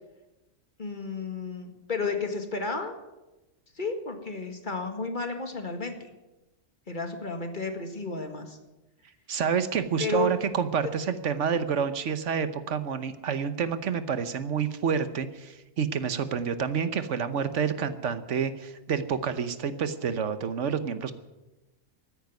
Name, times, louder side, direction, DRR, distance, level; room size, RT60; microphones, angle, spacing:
voice 1, 0.8-2.9 3.8-6.1 6.9-8.6 10.0-10.3, left 3 dB, 40° left, 5 dB, 1.9 m, -32 dB
voice 2, 9.3-21.1, right 7 dB, 75° right, 12 dB, 1.3 m, -28 dB
14.0 x 9.8 x 9.4 m, 1.0 s
omnidirectional pair, 1.3 m